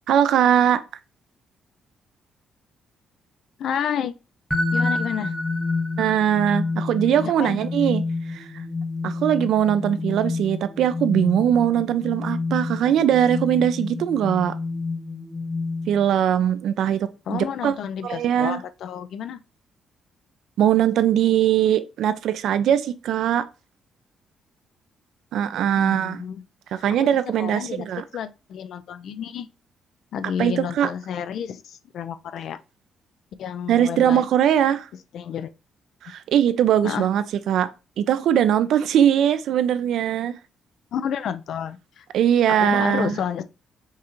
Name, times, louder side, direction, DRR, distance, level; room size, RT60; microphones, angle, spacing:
voice 1, 0.1-0.8 6.0-8.0 8.3-8.5 9.0-14.5 15.9-17.7 18.0-18.6 20.6-23.5 25.3-26.2 26.7-28.0 30.4-30.9 33.7-34.9 36.0-37.7 38.0-40.3 42.1-43.2, right 10 dB, 75° right, 0.4 m, -21 dB
voice 2, 3.6-4.1 4.7-5.3 7.1-7.6 17.3-19.4 25.8-26.4 27.0-27.9 28.1-29.5 30.1-32.6 33.4-34.2 35.1-35.5 36.8-37.1 40.9-42.0 42.6-43.4, left 8 dB, 70° left, 0.3 m, -30 dB
sound 1, 4.5-16.2, left 3 dB, ahead, 0.7 m, -28 dB
5.4 x 2.5 x 3.0 m
cardioid pair, 90°, 0 cm